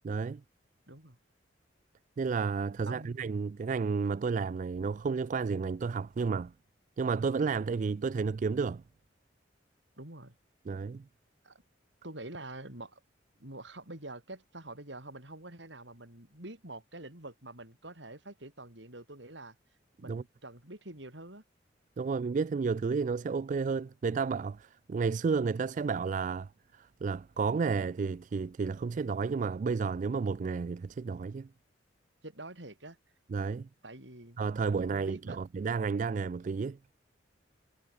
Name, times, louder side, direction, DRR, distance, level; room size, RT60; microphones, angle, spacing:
voice 1, 0.0-0.4 2.2-6.5 7.0-8.8 10.7-11.0 20.1-20.2 22.0-31.5 33.3-33.7 34.4-36.8, right 5 dB, 40° right, 0.3 m, -31 dB
voice 2, 0.9-1.2 2.8-3.2 10.0-10.4 11.4-11.6 12.0-13.0 13.4-19.6 20.0-21.4 32.2-33.0 33.8-34.4 34.9-35.4, right 2 dB, 70° right, 5.8 m, -46 dB
head